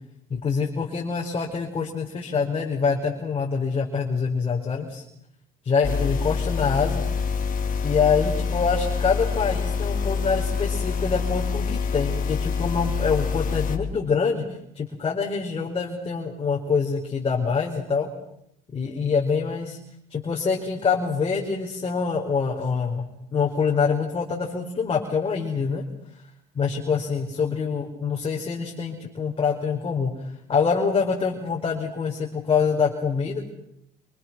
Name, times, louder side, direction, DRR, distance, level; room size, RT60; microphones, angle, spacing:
voice 1, 0.3-5.0 5.6-7.0 7.8-18.1 18.7-19.8 20.1-25.8 26.5-33.5, left 5 dB, 35° left, 0 dB, 4.7 m, -25 dB
sound 1, 5.8-13.8, left 5 dB, 55° left, 4.7 m, -26 dB
28.0 x 27.0 x 6.2 m, 0.77 s
cardioid pair, 110°, 17 cm